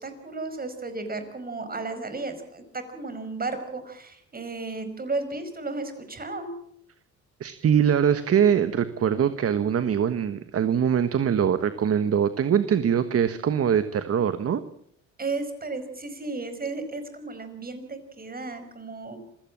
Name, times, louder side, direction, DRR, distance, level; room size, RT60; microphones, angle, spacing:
voice 1, 0.0-6.5 15.2-19.2, right 3 dB, 30° right, 9 dB, 5.4 m, -34 dB
voice 2, 7.4-14.6, right 8 dB, 50° right, 11 dB, 1.3 m, -23 dB
26.5 x 16.5 x 7.4 m, 0.70 s
cardioid pair, 90°, 30 cm